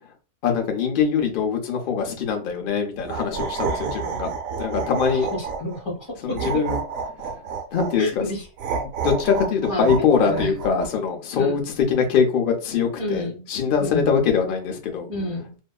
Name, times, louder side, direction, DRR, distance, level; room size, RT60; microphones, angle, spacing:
voice 1, 0.4-4.3 4.6-5.3 6.2-6.8 7.7-8.2 8.8-11.6 11.9-15.1, left 6 dB, 80° left, 3 dB, 0.4 m, -23 dB
sound 1, 3.0-5.8 6.3-8.0 8.6-10.9, right 5 dB, 70° right, 0.9 m, -29 dB
voice 2, 5.1-6.7 8.0-8.5 9.7-10.5 11.4-11.5 13.0-13.4 13.8-14.3 15.1-15.5, equal, 30° left, -1 dB, 0.6 m, -30 dB
2.6 x 2.3 x 2.2 m, 0.34 s
omnidirectional pair, 1.7 m